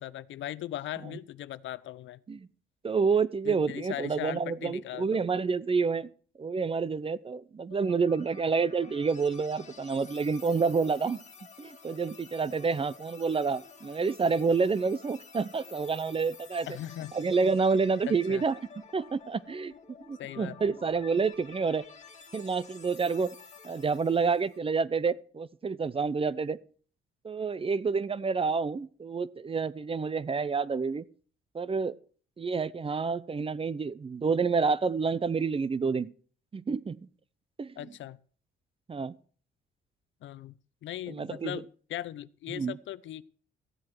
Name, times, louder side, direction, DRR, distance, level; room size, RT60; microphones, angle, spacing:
voice 1, 0.0-2.2 3.4-5.2 16.7-17.2 18.1-18.4 20.2-20.7 37.8-38.2 40.2-40.5 40.8-43.2, left 13 dB, 75° left, 18 dB, 0.6 m, -39 dB
voice 2, 2.8-6.1 6.4-11.2 11.6-16.7 17.1-18.5 18.9-19.7 20.1-21.8 22.3-23.3 23.6-26.6 27.2-31.0 31.5-32.0 32.4-36.1 36.5-37.0 37.6-37.7 38.9-39.2 41.1-41.6 42.5-42.7, right 5 dB, 30° right, 19 dB, 0.7 m, -28 dB
sound 1, 7.7-24.6, left 5 dB, 35° left, 2.1 m, -51 dB
14.5 x 7.5 x 6.1 m, 0.43 s
cardioid pair, 90°, 20 cm